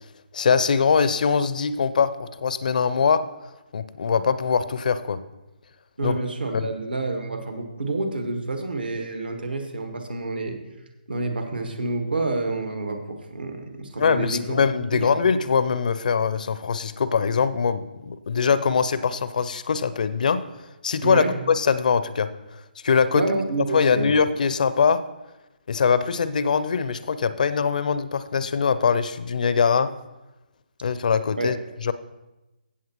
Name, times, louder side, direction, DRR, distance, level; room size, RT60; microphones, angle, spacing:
voice 1, 0.3-3.2 3.7-5.2 6.0-6.2 6.5-6.7 14.0-20.4 20.8-23.2 23.7-25.0 25.7-29.9 30.8-31.5 31.8-31.9, left 6 dB, 55° left, 14 dB, 0.5 m, -22 dB
voice 2, 6.0-10.6 11.1-14.6 14.9-15.2 21.0-21.3 23.1-24.1 31.4-31.5, right 2 dB, 75° right, 5 dB, 1.6 m, -28 dB
15.5 x 7.3 x 3.0 m, 1.0 s
figure-of-eight pair, 140°, 5 cm